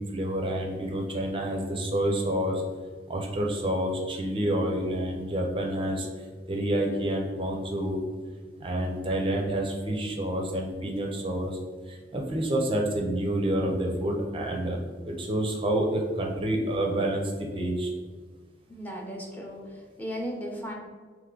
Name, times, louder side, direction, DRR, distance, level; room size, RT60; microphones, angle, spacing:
voice 1, 0.0-2.6 3.1-6.1 6.5-8.0 8.6-11.6 11.9-14.8 15.1-17.9, right 1 dB, 30° right, 0 dB, 0.5 m, -28 dB
voice 2, 18.7-20.7, equal, 10° left, -2 dB, 0.6 m, -36 dB
3.5 x 3.0 x 3.7 m, 1.5 s
head